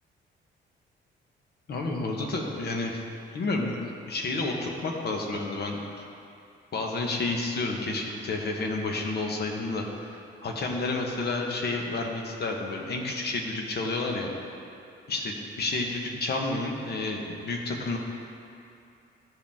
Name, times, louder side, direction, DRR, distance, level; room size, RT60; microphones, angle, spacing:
voice 1, 1.7-3.0 3.3-3.8 4.1-6.0 6.7-14.3 15.1-18.0, left 2 dB, 55° left, 1 dB, 1.3 m, -30 dB
13.5 x 5.1 x 3.6 m, 2.6 s
cardioid pair, 90°, 20 cm